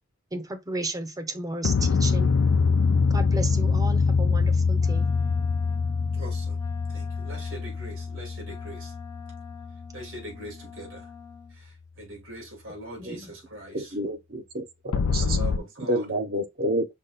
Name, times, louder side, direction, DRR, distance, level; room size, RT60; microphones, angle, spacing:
voice 1, 0.3-2.3 3.1-5.1 13.0-13.3 15.2-15.6, right 2 dB, 20° right, 0.7 m, -34 dB
sound 1, 1.6-10.0 14.9-15.6, left 4 dB, 75° left, 0.4 m, -24 dB
Wind instrument woodwind instrument, 4.8-11.6, left 7 dB, 15° left, 0.7 m, -46 dB
voice 2, 6.1-6.6 6.9-8.9 9.9-11.1 11.5-13.9 15.2-16.1, equal, 75° right, 2.5 m, -42 dB
voice 3, 13.7-15.4 15.9-16.9, right 1 dB, 50° right, 0.8 m, -29 dB
5.4 x 2.4 x 4.0 m
head